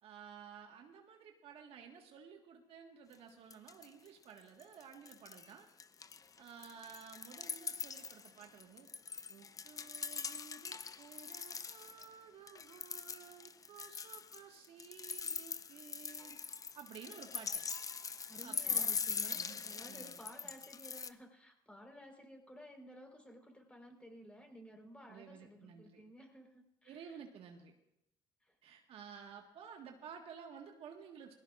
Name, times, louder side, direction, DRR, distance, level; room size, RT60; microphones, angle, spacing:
voice 1, 0.0-5.7 6.4-8.9 9.3-16.4 16.7-17.6 18.4-18.9 19.2-20.2 25.1-26.0 26.8-27.7 28.6-31.3, right 7 dB, 65° right, 3 dB, 1.6 m, -54 dB
sound 1, 3.1-3.2 3.5-4.1 4.4-5.5 5.8-12.1 12.5-21.1, left 5 dB, 35° left, 0.7 m, -42 dB
voice 2, 18.3-27.2 28.4-28.5, equal, 10° left, 2 dB, 4.2 m, -55 dB
19.0 x 16.5 x 2.5 m, 0.81 s
supercardioid pair, 70°, 11 cm